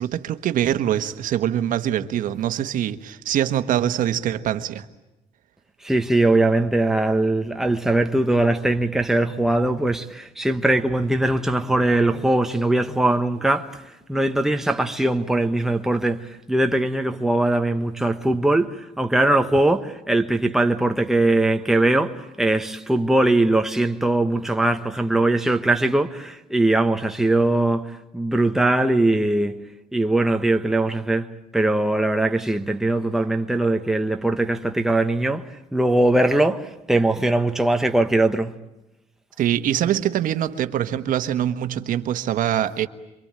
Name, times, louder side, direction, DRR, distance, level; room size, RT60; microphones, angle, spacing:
voice 1, 0.0-4.9 39.4-42.9, right 11 dB, 75° right, 1.3 m, -23 dB
voice 2, 5.8-29.6 29.9-38.5, right 2 dB, 5° right, 1.2 m, -21 dB
27.5 x 24.0 x 8.8 m
cardioid pair, 150°, 14 cm